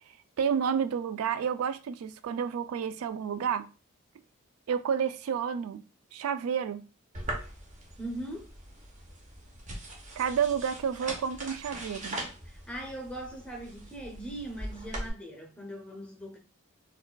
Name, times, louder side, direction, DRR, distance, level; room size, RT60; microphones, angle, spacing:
voice 1, 0.4-3.7 4.7-5.8 6.1-6.8 10.2-12.2, right 7 dB, 85° right, 0.3 m, -30 dB
sound 1, 7.1-15.1, right 1 dB, 35° right, 0.9 m, -41 dB
voice 2, 8.0-8.5 12.4-16.4, right 1 dB, 5° left, 0.8 m, -40 dB
4.4 x 2.5 x 2.2 m
head